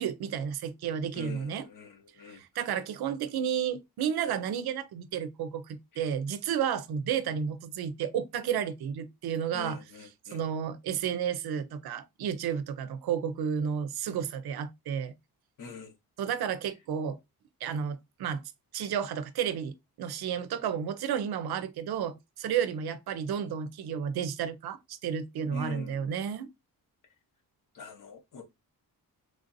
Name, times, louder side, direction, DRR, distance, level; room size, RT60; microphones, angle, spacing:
voice 1, 0.0-1.7 2.3-15.1 16.2-17.2 17.6-18.4 18.7-26.5, right 8 dB, 80° right, 0.5 m, -32 dB
voice 2, 1.1-2.4 9.5-10.4 15.6-15.9 25.5-26.0 27.7-28.4, left 5 dB, 55° left, 0.9 m, -44 dB
3.4 x 2.5 x 2.6 m
wide cardioid pair, 140°, 37 cm